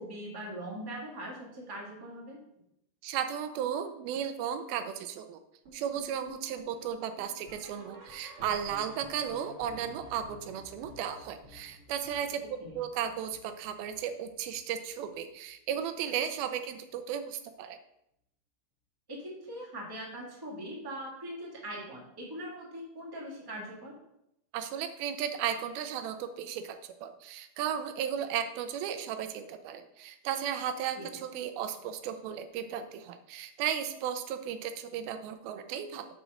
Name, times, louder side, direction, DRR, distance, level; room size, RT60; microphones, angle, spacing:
voice 1, 0.0-2.4 12.6-12.8 19.1-23.9 30.9-31.1, right 1 dB, 10° right, -3 dB, 1.3 m, -41 dB
voice 2, 3.0-5.4 5.7-12.4 12.7-17.8 24.5-36.1, right 9 dB, 90° right, 9 dB, 2.6 m, -35 dB
sound 1, 5.6-14.8 15.1-15.4 15.7-15.8 16.3-16.4 16.9-17.0, equal, 45° right, 3.9 m, -53 dB
8.2 x 4.9 x 6.4 m, 0.80 s
omnidirectional pair, 4.2 m